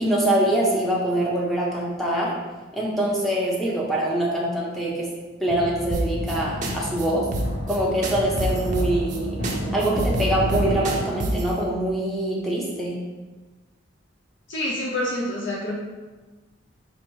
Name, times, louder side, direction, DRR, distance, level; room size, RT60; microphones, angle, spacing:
voice 1, 0.0-2.3 2.7-5.1 5.4-7.3 7.7-9.4 9.7-13.0, right 1 dB, ahead, -5 dB, 0.6 m, -24 dB
sound 1, 5.5-11.1, equal, 40° left, 1.1 m, -30 dB
sound 2, 5.9-6.4 6.6-6.7 7.0-7.1 7.3-9.2 9.4-9.5 9.8-11.5, right 1 dB, 40° right, 0.5 m, -27 dB
voice 2, 14.5-15.8, left 1 dB, 60° left, -4 dB, 0.5 m, -27 dB
4.4 x 2.6 x 3.1 m, 1.3 s
head